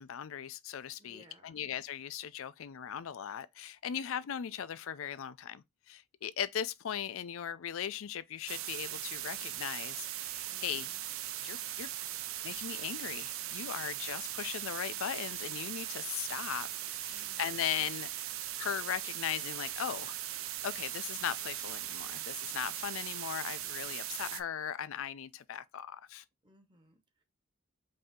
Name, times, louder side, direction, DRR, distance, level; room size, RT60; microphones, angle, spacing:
voice 1, 0.0-10.9 11.4-11.9 12.4-18.3 18.6-20.2 20.6-26.2, left 9 dB, 65° left, 0.4 m, -38 dB
voice 2, 1.0-1.6 10.5-11.0 17.1-17.6 26.4-27.2, equal, 20° right, 0.9 m, -61 dB
sound 1, 8.5-24.4, right 12 dB, 65° right, 0.5 m, -39 dB
5.4 x 2.7 x 3.6 m
head